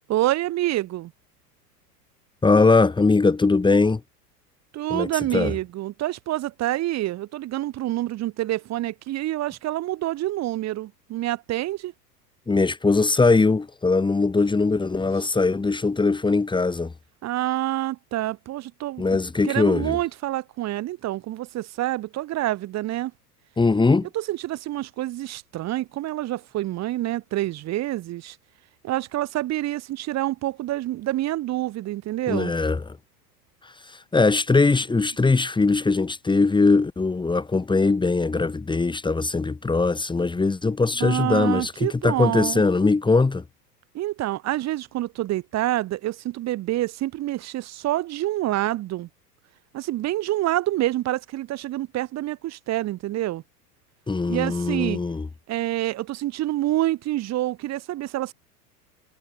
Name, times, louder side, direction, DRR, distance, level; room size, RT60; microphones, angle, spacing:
voice 1, 0.1-1.1 4.7-11.9 17.2-19.1 19.4-23.1 24.1-28.4 28.8-32.5 35.2-35.3 41.0-42.6 43.9-49.1 49.7-53.4 54.3-55.0 55.5-58.3, right 15 dB, 35° right, 5.4 m, -27 dB
voice 2, 2.4-4.0 4.9-5.5 12.5-16.9 19.0-20.0 23.6-24.1 32.3-32.8 33.6-43.4 54.1-55.3, left 3 dB, 10° left, 3.9 m, -21 dB
figure-of-eight pair, 90°, 48 cm